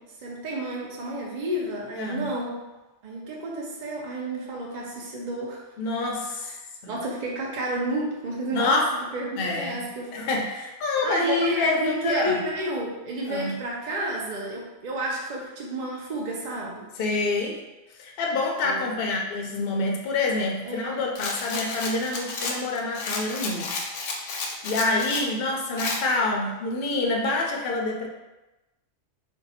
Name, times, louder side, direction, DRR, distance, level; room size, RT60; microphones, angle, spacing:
voice 1, 0.0-2.6 3.0-5.6 6.4-6.6 6.9-8.8 9.1-10.1 11.0-16.9 18.6-18.9 20.6-21.1, right 1 dB, 55° right, -3 dB, 0.5 m, -30 dB
voice 2, 2.0-2.3 5.8-6.5 6.8-6.9 8.5-8.9 9.4-9.8 10.1-12.4 13.3-13.6 17.0-17.6 18.0-28.1, left 2 dB, 60° left, 0 dB, 0.7 m, -27 dB
Rattle, 21.1-25.3 25.8-26.0, left 3 dB, 85° left, 0.9 m, -32 dB
2.6 x 2.3 x 4.0 m, 1.1 s
omnidirectional pair, 1.2 m